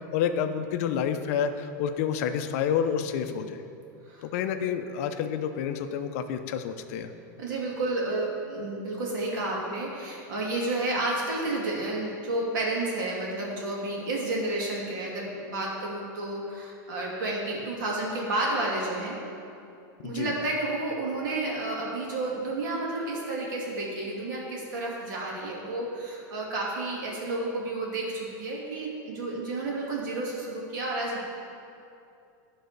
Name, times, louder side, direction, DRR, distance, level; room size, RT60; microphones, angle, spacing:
voice 1, 0.1-3.6 4.2-7.1 20.0-20.3, left 8 dB, 50° left, 8 dB, 0.5 m, -29 dB
voice 2, 7.4-19.2 20.0-31.3, right 2 dB, 90° right, -3 dB, 2.4 m, -31 dB
11.5 x 4.0 x 6.6 m, 2.6 s
supercardioid pair, 170°, 10 cm